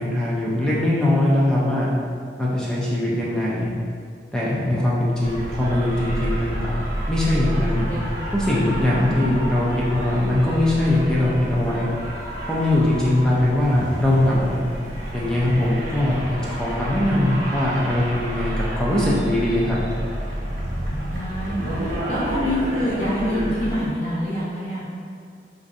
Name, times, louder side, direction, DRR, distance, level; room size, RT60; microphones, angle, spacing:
voice 1, 0.0-1.9 2.4-3.7 4.3-6.7 7.1-7.8 8.3-11.9 12.5-14.6 15.1-19.8, left 1 dB, 5° left, -7 dB, 0.4 m, -21 dB
sound 1, 5.2-23.9, equal, 60° right, 0.8 m, -29 dB
voice 2, 21.1-24.8, equal, 40° left, -12 dB, 0.7 m, -26 dB
4.2 x 2.6 x 2.5 m, 2.2 s
head